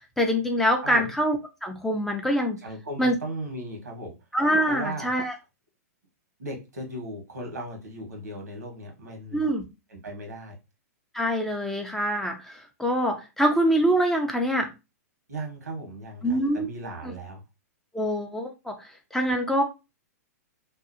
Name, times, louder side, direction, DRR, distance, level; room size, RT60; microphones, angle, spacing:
voice 1, 0.2-1.4 1.6-2.6 3.0-3.1 4.3-5.3 9.3-9.6 11.1-14.7 16.2-16.7 17.9-18.7 19.1-19.6, equal, 5° left, 2 dB, 0.5 m, -24 dB
voice 2, 0.8-1.1 2.6-4.1 4.7-5.4 6.4-9.5 9.9-10.6 15.3-17.4, right 1 dB, 90° right, 2 dB, 1.2 m, -37 dB
2.6 x 2.3 x 2.5 m, 0.26 s
hypercardioid pair, 120°, 9 cm